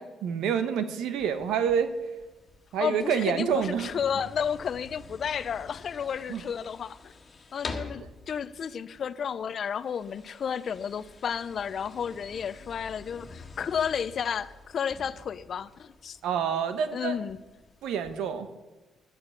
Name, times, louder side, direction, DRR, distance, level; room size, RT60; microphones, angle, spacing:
voice 1, 0.0-1.9 2.7-4.0 6.3-6.4 16.2-17.2 17.8-18.5, right 7 dB, 85° right, 11 dB, 1.1 m, -28 dB
sound 1, 1.1-18.1, left 3 dB, 35° left, 1.8 m, -47 dB
voice 2, 2.8-7.1 7.5-16.2 16.9-17.4, left 7 dB, 55° left, 15 dB, 0.6 m, -32 dB
11.5 x 8.1 x 8.9 m, 1.2 s
cardioid pair, 90°, 0 cm